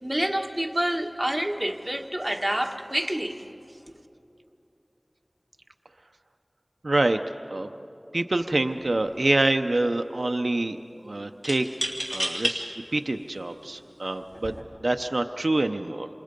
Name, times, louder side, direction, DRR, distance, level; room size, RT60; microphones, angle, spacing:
voice 1, 0.0-3.4, right 1 dB, 20° right, 3 dB, 1.5 m, -28 dB
voice 2, 6.8-7.2 7.5-7.7 8.1-10.8 11.0-14.5 14.8-16.1, right 2 dB, 85° right, 7 dB, 0.6 m, -26 dB
sound 1, 8.3-8.5 8.9-9.5 11.4-12.6 13.3-13.4 14.3-14.6, equal, 15° left, 3.1 m, -31 dB
27.5 x 27.0 x 5.3 m, 2.8 s
wide cardioid pair, 45°, 0 cm